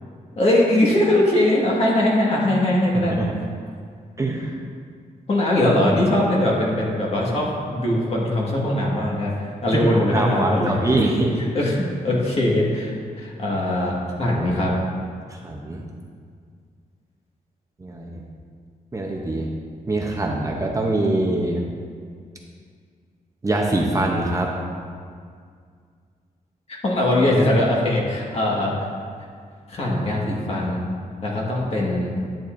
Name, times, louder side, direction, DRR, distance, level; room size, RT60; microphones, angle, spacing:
voice 1, 0.3-3.2 5.3-11.0 11.4-14.7 26.8-28.9 29.7-30.9 31.2-32.1, left 1 dB, 45° left, -4 dB, 1.7 m, -21 dB
voice 2, 2.9-3.3 4.2-4.6 9.7-11.4 15.3-15.9 17.8-18.2 18.9-19.5 19.9-21.6 23.4-24.5, right 2 dB, 20° right, -1 dB, 0.7 m, -23 dB
11.0 x 8.7 x 2.6 m, 2.1 s
wide cardioid pair, 155°, 15 cm